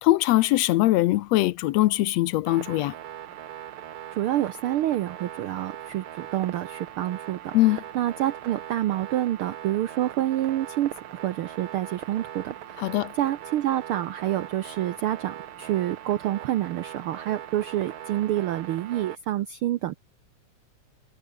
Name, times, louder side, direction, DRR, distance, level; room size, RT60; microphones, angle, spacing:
voice 1, 0.0-2.9 7.5-7.8 12.8-13.1, left 17 dB, 75° left, 1.6 m, -21 dB
sound 1, 2.5-19.2, right 11 dB, 60° right, 1.5 m, -40 dB
voice 2, 4.1-10.9 11.2-19.9, right 13 dB, 80° right, 1.2 m, -28 dB
omnidirectional pair, 3.3 m